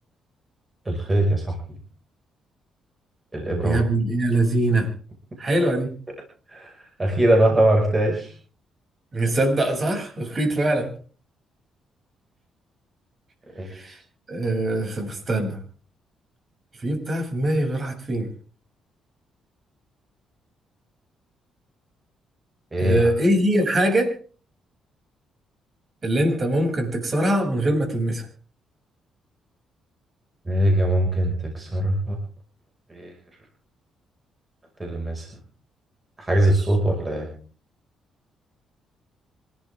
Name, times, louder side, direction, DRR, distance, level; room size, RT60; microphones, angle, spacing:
voice 1, 0.9-1.6 3.3-3.8 6.5-8.3 13.6-13.7 22.7-23.1 30.5-32.2 32.9-33.1 34.8-35.3 36.2-37.3, right 1 dB, 20° right, 1 dB, 5.8 m, -22 dB
voice 2, 3.6-4.9 5.4-5.9 9.1-10.9 13.6-14.0 14.3-15.6 16.8-18.3 22.8-24.1 26.0-28.3, right 1 dB, 40° right, 3 dB, 7.4 m, -23 dB
26.5 x 13.0 x 3.7 m, 0.41 s
cardioid pair, 90°, 0 cm